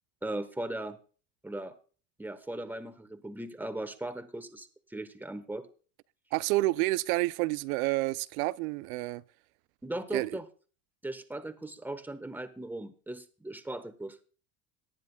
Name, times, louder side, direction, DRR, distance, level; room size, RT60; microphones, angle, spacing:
voice 1, 0.2-1.0 1.4-1.7 2.2-5.7 9.8-10.4 11.0-14.2, right 1 dB, 5° right, 1.2 m, -38 dB
voice 2, 6.3-9.2 10.1-10.3, right 19 dB, 85° right, 0.5 m, -29 dB
18.5 x 10.5 x 2.2 m
supercardioid pair, 100°, 41 cm